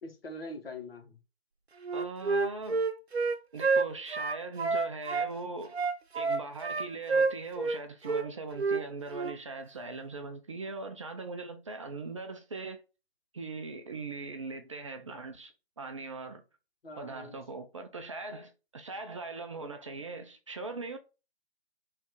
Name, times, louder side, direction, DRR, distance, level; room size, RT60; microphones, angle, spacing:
voice 1, 0.0-1.2 16.8-17.4, left 1 dB, 65° left, 1.7 m, -43 dB
Wind instrument woodwind instrument, 1.8-5.3 5.7-7.8 8.0-8.2 8.6-8.8 9.1-9.3, right 4 dB, 75° right, 0.7 m, -29 dB
voice 2, 1.9-2.9 3.5-5.8 6.1-12.8 13.3-16.4 17.0-21.0, right 3 dB, 30° right, 0.5 m, -40 dB
3.3 x 3.2 x 4.8 m
figure-of-eight pair, 140°, 32 cm